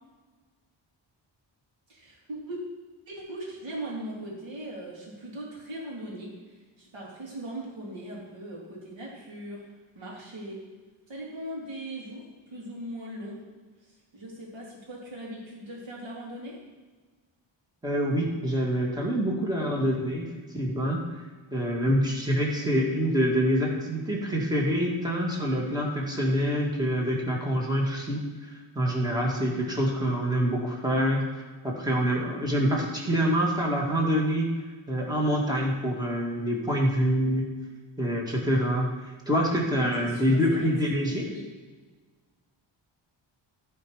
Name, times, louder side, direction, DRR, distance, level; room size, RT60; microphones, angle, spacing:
voice 1, 1.9-2.6 3.1-9.6 10.0-10.6 11.1-13.4 13.8-16.6 40.0-41.5, right 1 dB, 75° right, -4 dB, 3.6 m, -39 dB
voice 2, 17.8-20.3 20.5-21.0 21.5-28.2 28.8-34.5 34.9-37.5 38.0-41.3, equal, 10° right, -2 dB, 1.9 m, -26 dB
14.5 x 5.2 x 5.0 m, 1.3 s
wide cardioid pair, 150°, 46 cm